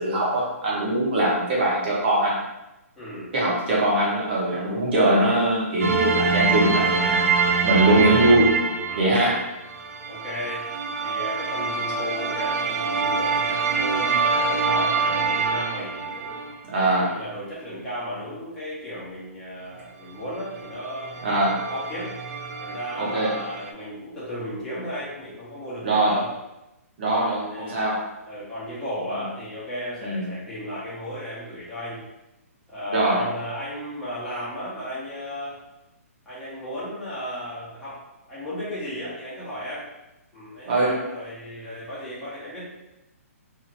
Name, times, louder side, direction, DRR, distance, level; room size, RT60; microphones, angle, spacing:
voice 1, 0.0-2.4 3.3-7.3 7.6-8.6 9.0-9.4 16.7-17.1 21.2-21.6 23.0-23.3 25.8-26.1 27.0-28.0 30.0-30.3 32.9-33.2 40.7-40.9, right 1 dB, 40° right, -5 dB, 1.1 m, -21 dB
voice 2, 3.0-3.4 8.9-9.2 10.1-10.7 11.0-16.5 17.0-21.4 21.7-22.1 22.6-26.3 27.1-32.0 32.7-35.6 36.2-39.9 40.3-42.6, equal, 5° left, -12 dB, 1.0 m, -34 dB
sound 1, 5.8-16.5 20.3-20.4 20.6-23.7, right 4 dB, 65° right, 0.4 m, -25 dB
2.9 x 2.8 x 2.8 m, 0.94 s
hypercardioid pair, 165°, 8 cm